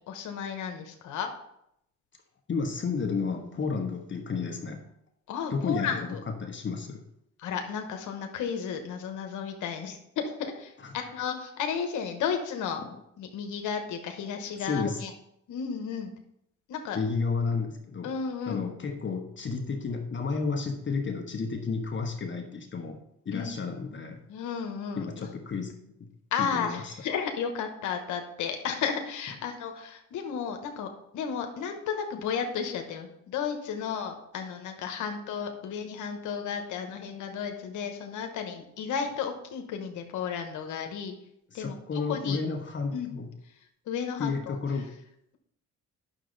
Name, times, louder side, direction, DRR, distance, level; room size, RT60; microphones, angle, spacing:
voice 1, 0.1-1.3 5.3-6.2 7.4-12.8 13.2-15.1 15.5-16.1 16.7-17.0 18.0-18.6 23.3-23.5 24.3-25.3 26.3-41.1 41.5-42.4 42.9-43.1 43.9-44.6, left 7 dB, 80° left, 5 dB, 1.1 m, -33 dB
voice 2, 2.5-4.8 5.5-7.0 12.8-13.0 14.6-15.0 16.9-18.1 18.5-23.0 23.2-24.2 25.0-26.1 26.4-26.9 41.5-43.3 44.2-44.9, left 4 dB, 40° left, 3 dB, 1.2 m, -32 dB
9.2 x 6.4 x 3.9 m, 0.77 s
cardioid pair, 90°, 30 cm